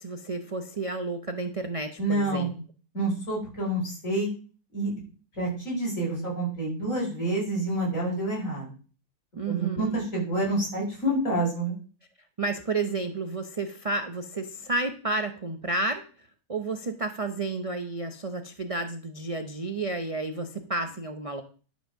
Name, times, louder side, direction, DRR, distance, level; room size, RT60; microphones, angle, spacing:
voice 1, 0.0-2.5 9.4-10.0 12.4-21.4, right 3 dB, 40° right, 7 dB, 0.4 m, -31 dB
voice 2, 2.0-2.5 2.9-4.3 4.7-4.9 5.4-8.7 9.5-11.7, right 1 dB, 50° left, -4 dB, 5.6 m, -28 dB
11.0 x 5.1 x 6.3 m, 0.39 s
omnidirectional pair, 1.7 m